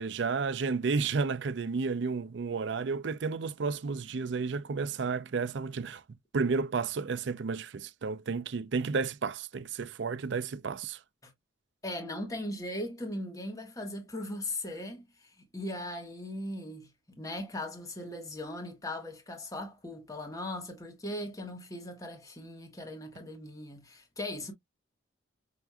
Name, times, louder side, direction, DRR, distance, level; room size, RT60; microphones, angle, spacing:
voice 1, 0.0-6.0 6.3-11.0, right 4 dB, 65° right, 0.5 m, -32 dB
voice 2, 11.8-24.5, left 1 dB, 15° left, 1.1 m, -39 dB
5.9 x 2.6 x 2.2 m
head